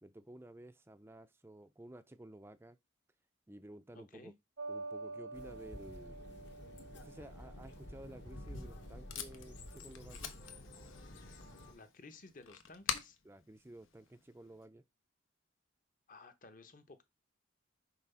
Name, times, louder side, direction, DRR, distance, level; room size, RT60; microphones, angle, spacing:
voice 1, 0.0-2.8 3.5-4.3 4.7-6.2 6.9-10.3 13.2-14.8, right 1 dB, 10° right, 0.5 m, -53 dB
voice 2, 3.9-4.3 11.7-13.2 16.1-17.0, left 3 dB, 40° left, 0.9 m, -55 dB
sound 1, 4.6-9.8, right 3 dB, 75° right, 1.0 m, -49 dB
sound 2, 5.3-11.7, left 1 dB, 55° left, 1.4 m, -51 dB
Packing tape duct tape, 8.2-14.6, left 8 dB, 85° left, 1.0 m, -46 dB
6.0 x 3.9 x 5.6 m
head